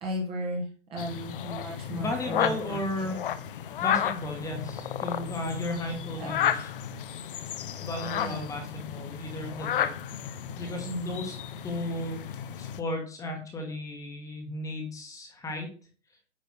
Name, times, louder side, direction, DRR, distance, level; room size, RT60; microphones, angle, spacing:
voice 1, 0.0-3.1 6.2-6.3 8.2-8.5 10.8-11.2, equal, 15° right, -1 dB, 1.2 m, -36 dB
sound 1, 1.0-12.8, left 9 dB, 45° left, 0.7 m, -33 dB
voice 2, 1.9-3.2 3.8-6.7 7.8-9.9 10.6-11.3 11.6-15.7, left 1 dB, 10° left, 2 dB, 1.4 m, -35 dB
9.7 x 3.3 x 6.2 m, 0.38 s
hypercardioid pair, 145°, 37 cm